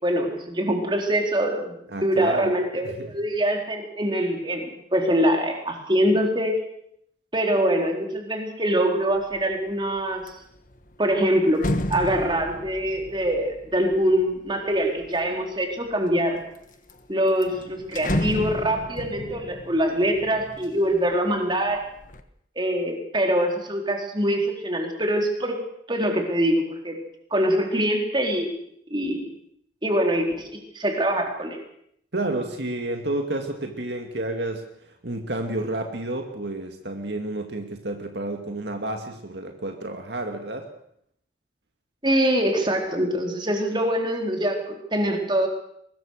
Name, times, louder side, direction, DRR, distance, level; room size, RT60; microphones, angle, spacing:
voice 1, 0.0-6.6 7.3-10.2 11.0-16.4 17.1-21.8 22.6-25.6 25.9-26.9 27.3-28.5 28.9-29.3 29.8-31.6 42.0-45.5, equal, 25° right, 2 dB, 4.2 m, -24 dB
voice 2, 1.9-3.2 32.1-40.7, right 2 dB, 65° right, 4 dB, 2.2 m, -30 dB
sound 1, 9.2-9.5 9.9-15.3 15.9-16.6 16.9-17.0 17.3-21.2 21.6-22.2, left 1 dB, 45° left, 1.6 m, -32 dB
23.5 x 20.5 x 6.6 m, 0.72 s
head